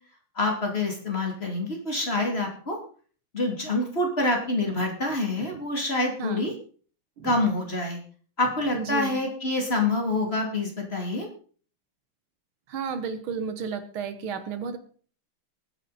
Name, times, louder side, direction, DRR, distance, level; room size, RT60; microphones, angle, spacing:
voice 1, 0.4-2.8 3.3-6.5 7.2-8.0 8.4-11.3, left 2 dB, 30° left, 2 dB, 2.9 m, -26 dB
voice 2, 8.7-9.2 12.7-14.8, right 6 dB, 80° right, 10 dB, 2.0 m, -32 dB
19.5 x 9.1 x 4.2 m, 0.43 s
omnidirectional pair, 2.3 m